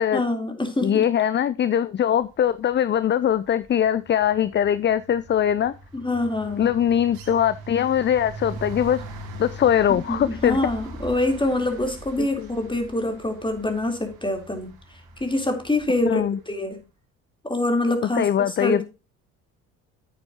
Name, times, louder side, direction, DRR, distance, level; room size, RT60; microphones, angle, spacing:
voice 1, 0.1-1.1 5.9-6.7 10.1-14.7 15.2-16.8 17.4-18.2 18.6-18.8, left 2 dB, 10° left, 4 dB, 3.5 m, -25 dB
voice 2, 0.8-5.7 6.6-9.0 9.4-10.6 12.2-12.5 16.0-16.4 18.0-18.8, left 9 dB, 30° left, 16 dB, 0.5 m, -22 dB
sound 1, 2.5-2.8 3.1-16.3, right 1 dB, 65° right, 2.8 m, -41 dB
10.5 x 8.9 x 2.9 m, 0.30 s
hypercardioid pair, 55°, 39 cm